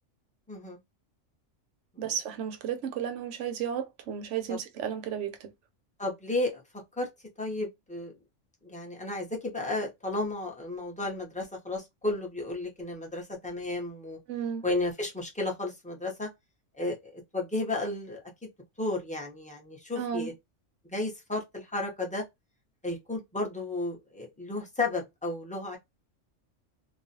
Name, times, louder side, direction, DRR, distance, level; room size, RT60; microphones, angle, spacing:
voice 1, 0.5-0.8 1.9-2.2 4.5-4.6 6.0-6.6 7.0-7.1 7.4-8.1 8.6-14.2 14.6-16.3 16.8-18.2 18.8-20.3 20.9-22.2 22.8-25.8, left 2 dB, 10° left, 0.4 m, -33 dB
voice 2, 2.0-5.5 14.3-14.6 20.0-20.3, right 8 dB, 75° right, 0.9 m, -33 dB
2.4 x 2.1 x 2.6 m
omnidirectional pair, 1.3 m